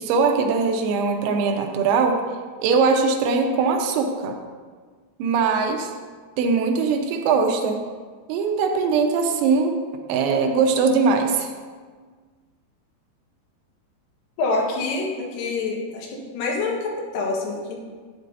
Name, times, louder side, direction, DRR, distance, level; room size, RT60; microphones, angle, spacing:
voice 1, 0.0-2.2 2.6-4.4 5.2-5.9 6.4-7.8 8.3-9.8 10.1-11.5, right 4 dB, 90° right, 3 dB, 3.5 m, -21 dB
voice 2, 14.4-17.8, left 3 dB, 80° left, -2 dB, 4.0 m, -26 dB
12.5 x 8.3 x 2.7 m, 1.5 s
omnidirectional pair, 5.9 m